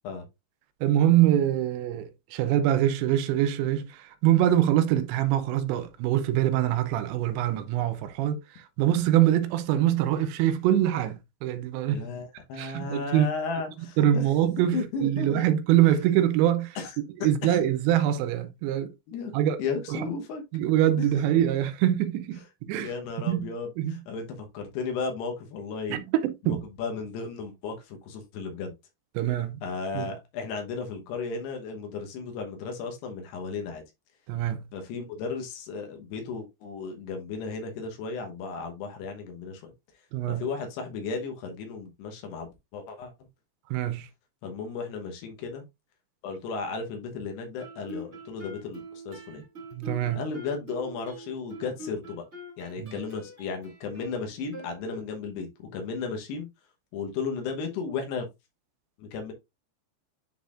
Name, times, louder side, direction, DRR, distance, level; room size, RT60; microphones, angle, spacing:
voice 1, 0.8-12.0 12.6-13.3 14.0-16.8 17.2-18.9 19.3-19.6 19.9-20.0 20.5-22.4 22.7-22.9 23.3-23.5 23.8-23.9 25.9-26.6 29.2-29.6 29.9-30.1 34.3-34.6 40.1-40.5 43.7-44.1 49.7-50.2 52.8-53.0, right 12 dB, 85° right, 3.0 m, -24 dB
voice 2, 11.9-14.3 14.7-15.5 16.8-16.9 17.4-17.6 19.1-19.3 19.6-20.4 21.0-21.3 22.8-26.0 26.4-28.7 29.6-33.8 34.7-39.7 40.3-43.1 44.4-45.6 46.2-49.4 50.2-52.2 52.6-56.5 56.9-58.3 59.0-59.3, left 4 dB, 75° left, 3.1 m, -34 dB
Guitar, 47.6-55.3, equal, 30° right, 1.2 m, -44 dB
10.0 x 4.0 x 2.5 m
omnidirectional pair, 5.1 m